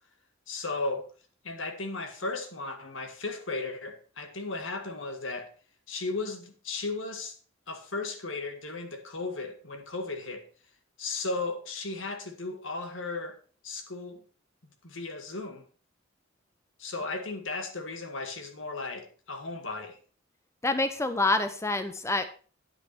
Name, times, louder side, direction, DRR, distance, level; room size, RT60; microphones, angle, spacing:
voice 1, 0.5-1.1 1.4-5.5 5.9-7.4 7.7-10.4 11.0-13.4 13.6-14.2 14.8-15.6 16.8-20.0, left 3 dB, 75° left, 1.8 m, -35 dB
voice 2, 20.6-22.3, left 2 dB, 15° left, 0.6 m, -27 dB
9.6 x 8.9 x 4.3 m
head